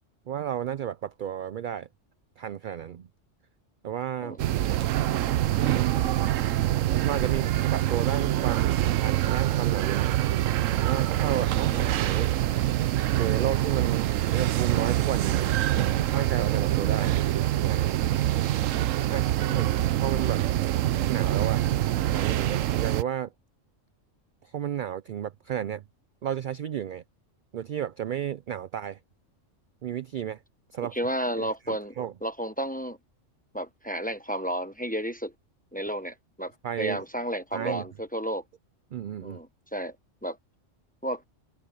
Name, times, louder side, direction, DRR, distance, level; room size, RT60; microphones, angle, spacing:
voice 1, 0.3-1.9 2.4-3.1 3.8-4.4 5.6-6.1 7.0-10.1 10.7-12.4 13.1-15.5 16.1-17.2 17.6-17.9 19.1-19.7 20.0-20.4 21.0-21.6 22.1-23.3 24.4-25.8 26.2-27.0 27.5-29.0 29.8-30.4 30.7-30.9 31.4-32.1 36.6-37.0 37.5-37.8 38.9-39.4, right 10 dB, 60° right, 0.5 m, -32 dB
sound 1, 4.4-23.0, right 13 dB, 90° right, 1.0 m, -25 dB
voice 2, 11.5-12.0 19.5-19.6 30.9-33.0 33.5-35.3 35.7-36.5 36.8-38.4 39.2-40.0 40.2-40.4 41.0-41.2, right 1 dB, 5° left, 1.0 m, -32 dB
open air
omnidirectional pair, 1.3 m